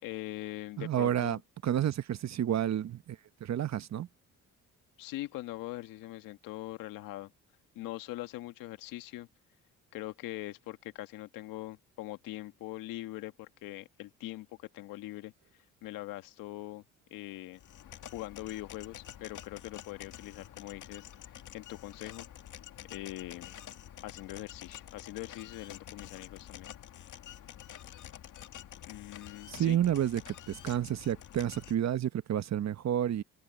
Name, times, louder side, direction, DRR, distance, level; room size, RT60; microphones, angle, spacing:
voice 1, 0.0-1.4 5.0-7.3 7.7-9.3 9.9-15.3 15.8-16.8 17.1-17.6 18.1-22.3 22.9-23.5 24.0-26.7 28.8-29.8, left 17 dB, 85° left, 1.6 m, -42 dB
voice 2, 0.8-4.1 29.5-33.2, right 10 dB, 55° right, 1.1 m, -30 dB
sound 1, 17.6-31.7, left 11 dB, 65° left, 2.0 m, -48 dB
supercardioid pair, 70°, 33 cm